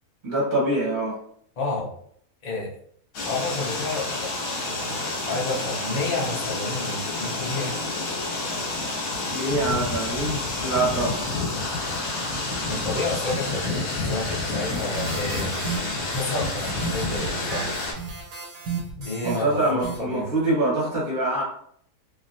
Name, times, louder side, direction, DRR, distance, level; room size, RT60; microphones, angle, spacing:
voice 1, 0.2-1.2 9.3-11.3 19.2-21.4, right 2 dB, 35° right, -4 dB, 1.2 m, -24 dB
voice 2, 1.6-1.9 2.4-2.7 3.2-4.3 4.6-7.8 12.7-15.7 16.1-17.8 19.0-20.3, left 2 dB, 50° left, -4 dB, 0.4 m, -30 dB
sound 1, 3.1-17.9, left 2 dB, 75° left, 1.4 m, -29 dB
sound 2, 14.7-20.0, right 5 dB, 85° right, 1.3 m, -34 dB
3.0 x 2.7 x 2.6 m, 0.64 s
omnidirectional pair, 1.7 m